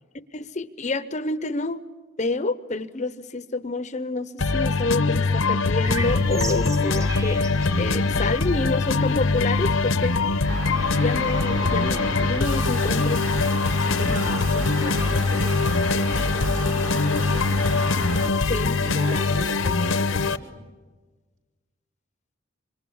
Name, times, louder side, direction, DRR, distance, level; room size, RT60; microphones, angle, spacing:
voice 1, 0.3-1.8 2.2-7.4 7.7-10.6 10.9-13.2 18.5-18.8 19.1-19.3, left 3 dB, 35° left, 14 dB, 0.7 m, -28 dB
sound 1, 4.4-20.4, left 3 dB, 75° left, 0.9 m, -23 dB
sound 2, 5.8-13.5, right 1 dB, 15° right, 0.7 m, -35 dB
sound 3, 10.5-18.3, right 2 dB, 85° right, 2.5 m, -33 dB
voice 2, 13.8-17.5 18.8-20.6, equal, 65° right, 2 dB, 4.9 m, -38 dB
26.5 x 25.5 x 7.1 m, 1.3 s
head